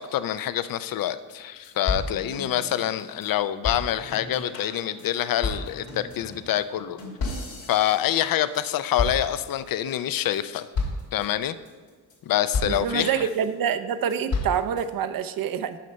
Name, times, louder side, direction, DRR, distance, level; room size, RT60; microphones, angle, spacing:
voice 1, 0.0-7.0 7.7-10.7 11.1-11.6 12.3-13.2, left 12 dB, 50° left, 14 dB, 0.5 m, -26 dB
sound 1, 1.0-1.1 1.3-1.4 1.6-3.3 3.6-8.7 9.0-9.7 10.1-10.4 10.7-11.3 11.7-12.1 12.5-13.5 13.9-14.9, left 3 dB, 70° left, 2.4 m, -32 dB
voice 2, 12.7-15.8, right 8 dB, 50° right, 11 dB, 0.6 m, -26 dB
6.5 x 5.5 x 5.3 m, 1.5 s
supercardioid pair, 60°, 47 cm